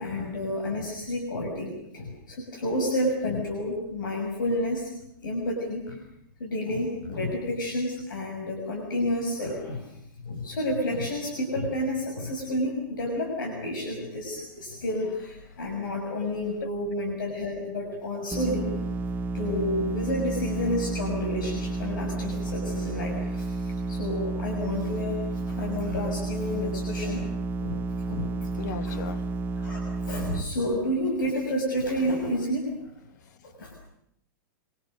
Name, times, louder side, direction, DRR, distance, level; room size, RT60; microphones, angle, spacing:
voice 1, 0.0-4.9 5.2-6.0 6.4-9.9 10.2-18.8 19.3-27.3 27.6-27.8 28.1-28.5 28.8-29.0 29.6-32.7 33.4-33.8, left 1 dB, 85° left, 6.6 m, -30 dB
sound 1, 18.3-30.4, right 3 dB, 20° right, 0.9 m, -31 dB
voice 2, 28.4-30.0 33.2-33.4, left 8 dB, 60° left, 1.6 m, -40 dB
25.5 x 25.5 x 6.7 m
hypercardioid pair, 145°, 11 cm